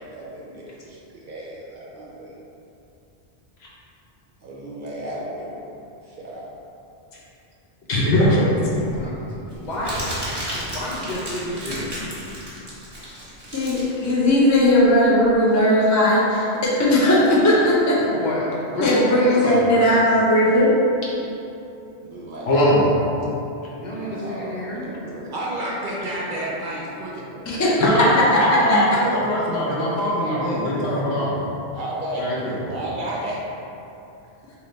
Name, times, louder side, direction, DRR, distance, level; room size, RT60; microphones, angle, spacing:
voice 1, 0.0-2.4 4.4-5.6 6.0-6.4 22.0-23.2 23.7-27.2 31.7-32.2 32.6-33.4, right 1 dB, 55° right, -5 dB, 0.7 m, -33 dB
voice 2, 7.9-8.5 22.4-22.8 27.8-31.4 32.2-32.5, left 1 dB, 70° left, -5 dB, 1.0 m, -21 dB
voice 3, 8.6-10.1 10.7-12.0 18.1-19.6 23.8-24.8, equal, 50° left, -6 dB, 0.8 m, -29 dB
Crumpling crinkling, 8.6-15.3, equal, 25° right, 0.9 m, -34 dB
voice 4, 13.5-18.0 18.8-20.7 27.5-27.9 28.1-28.8, left 1 dB, 25° left, -6 dB, 0.4 m, -18 dB
3.2 x 2.9 x 3.8 m, 2.8 s
omnidirectional pair, 1.1 m